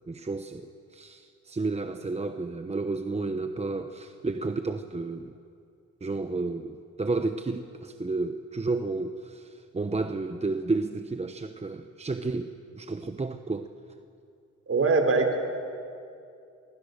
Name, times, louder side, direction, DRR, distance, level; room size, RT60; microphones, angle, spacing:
voice 1, 0.0-5.3 6.0-13.7, right 3 dB, 20° right, 8 dB, 1.0 m, -32 dB
voice 2, 14.7-15.4, right 3 dB, 50° right, 4 dB, 4.0 m, -22 dB
24.5 x 24.5 x 6.8 m, 2.5 s
cardioid pair, 80°, 31 cm